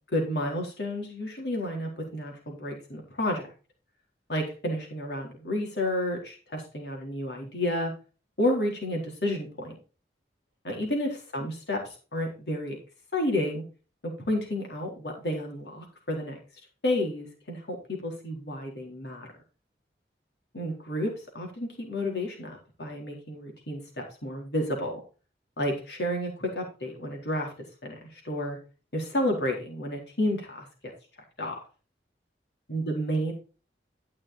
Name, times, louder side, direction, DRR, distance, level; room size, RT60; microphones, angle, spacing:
voice 1, 0.1-3.5 4.3-7.9 8.4-9.7 10.6-12.8 13.1-13.6 14.0-16.4 16.8-19.3 20.5-25.0 25.6-27.5 27.8-28.6 28.9-30.7 31.4-31.6 32.7-33.3, left 1 dB, 80° left, 0 dB, 4.1 m, -31 dB
13.0 x 6.3 x 4.1 m, 0.34 s
head